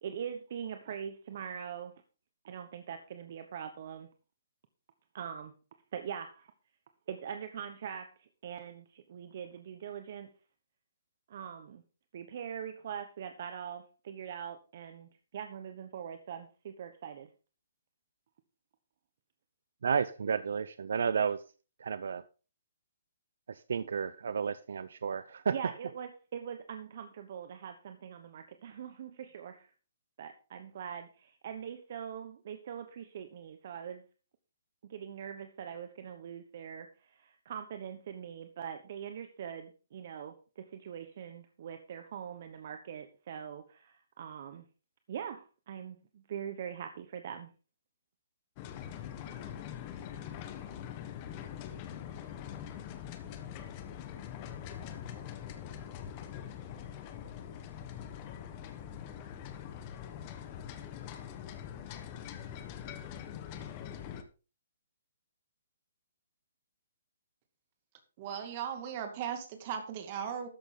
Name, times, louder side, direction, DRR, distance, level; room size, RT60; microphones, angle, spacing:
voice 1, 0.0-2.0 2.4-4.1 5.1-5.5 5.9-6.5 7.1-10.3 11.3-11.8 12.1-17.3 25.5-29.7 30.2-34.0 34.8-44.6 45.1-47.5, right 8 dB, 45° right, 8 dB, 1.2 m, -42 dB
voice 2, 19.8-21.4 21.8-22.2 23.5-25.5, right 6 dB, 70° right, 15 dB, 0.6 m, -32 dB
sound 1, 48.6-64.2, left 9 dB, 25° left, 1.3 m, -43 dB
voice 3, 68.2-70.5, right 8 dB, 30° right, 7 dB, 2.4 m, -37 dB
13.0 x 9.7 x 3.9 m, 0.34 s
hypercardioid pair, 165°, 0 cm